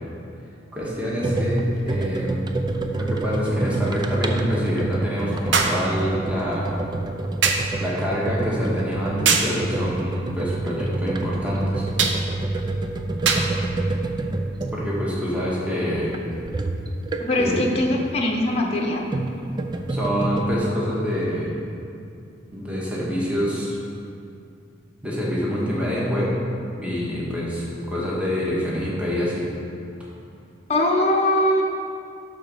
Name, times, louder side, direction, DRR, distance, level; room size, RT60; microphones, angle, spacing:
voice 1, 0.7-2.6 2.9-6.7 7.8-11.8 14.7-16.1 17.4-17.7 19.9-21.6 22.5-23.8 25.0-26.4 26.7-29.4, equal, 5° right, -6 dB, 1.5 m, -26 dB
sound 1, 1.2-17.6 18.6-20.5, right 2 dB, 20° right, 0.4 m, -28 dB
sound 2, 1.7-1.8 5.5-5.9 7.4-7.7 9.3-9.6 12.0-12.2 13.3-13.5 14.6-14.7, right 5 dB, 65° right, 0.7 m, -21 dB
voice 2, 17.2-19.0 30.7-31.6, left 1 dB, 30° left, 0 dB, 0.9 m, -21 dB
12.0 x 4.0 x 6.0 m, 2.5 s
head